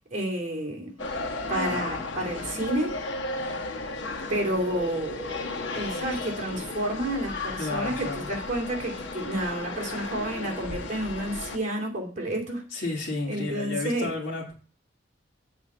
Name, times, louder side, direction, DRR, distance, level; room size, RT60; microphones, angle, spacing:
voice 1, 0.1-0.9 1.5-3.0 4.3-12.6 13.3-14.1, right 1 dB, 40° right, 2.7 m, -30 dB
sound 1, 1.0-11.6, left 3 dB, 70° left, 1.4 m, -34 dB
voice 2, 7.6-8.3 12.7-14.5, left 3 dB, 55° left, 2.1 m, -32 dB
7.9 x 4.4 x 6.7 m
head